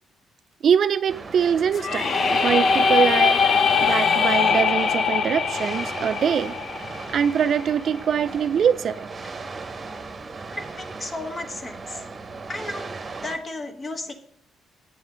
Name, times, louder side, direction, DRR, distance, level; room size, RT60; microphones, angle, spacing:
voice 1, 0.6-2.1 2.4-3.4 3.8-6.5 7.1-9.1, right 7 dB, 60° right, 13 dB, 0.3 m, -23 dB
sound 1, 1.1-13.4, right 4 dB, 35° right, 1.0 m, -37 dB
sound 2, 1.7-7.6, left 5 dB, 50° left, 0.7 m, -22 dB
voice 2, 10.6-12.0 12.5-14.1, left 2 dB, 30° left, 6 dB, 1.2 m, -34 dB
8.4 x 7.2 x 3.8 m, 0.64 s
cardioid pair, 90°, 0 cm